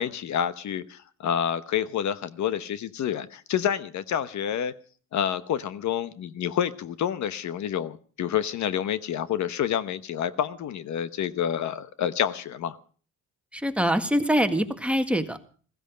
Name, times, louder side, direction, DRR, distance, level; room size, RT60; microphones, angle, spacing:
voice 1, 0.0-4.7 5.1-12.8, left 9 dB, 70° left, 14 dB, 1.1 m, -28 dB
voice 2, 13.5-15.4, equal, 5° right, 6 dB, 1.7 m, -24 dB
15.5 x 15.5 x 5.1 m, 0.42 s
cardioid pair, 90°, 30 cm